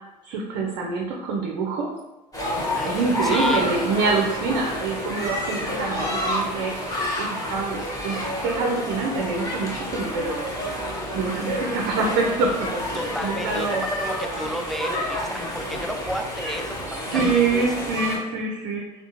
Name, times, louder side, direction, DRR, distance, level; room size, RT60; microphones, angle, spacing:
voice 1, 0.2-1.9 2.8-6.7 7.2-7.8 8.0-13.8 17.1-18.8, right 4 dB, 55° right, 0 dB, 0.5 m, -26 dB
sound 1, 2.3-18.2, left 1 dB, 15° left, 1.2 m, -29 dB
voice 2, 2.8-3.6 12.9-17.9, equal, ahead, 3 dB, 0.3 m, -32 dB
sound 2, 3.6-8.5, right 2 dB, 30° right, 0.9 m, -42 dB
3.5 x 2.4 x 2.8 m, 1.1 s
figure-of-eight pair, 65°, 21 cm